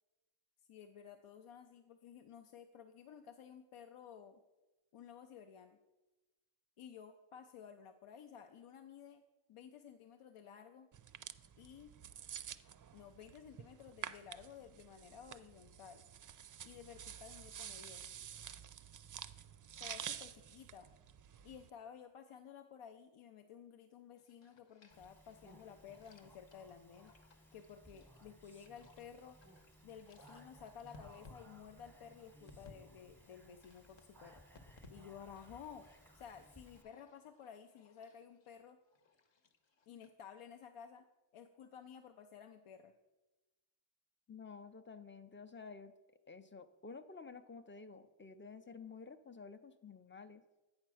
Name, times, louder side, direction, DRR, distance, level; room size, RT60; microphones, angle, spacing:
voice 1, 0.7-4.4 4.9-5.8 6.8-9.2 9.5-10.9 11.6-12.0 12.9-16.0 16.6-18.1 19.8-20.9 21.4-27.1 27.5-29.4 29.8-34.4 34.9-35.9 36.1-38.8 39.9-41.1 41.3-42.9, left 8 dB, 80° left, 7 dB, 0.6 m, -54 dB
sound 1, 10.9-21.7, right 8 dB, 40° right, 0.4 m, -50 dB
sound 2, 24.2-32.8 33.1-34.9 35.3-40.1, left 3 dB, 60° left, 1.0 m, -65 dB
Speech, 24.9-36.8, right 1 dB, 5° left, 0.9 m, -62 dB
voice 2, 44.3-45.9 46.3-50.4, left 5 dB, 25° left, 11 dB, 0.5 m, -52 dB
8.5 x 4.4 x 6.2 m, 1.1 s
wide cardioid pair, 75°, 50 cm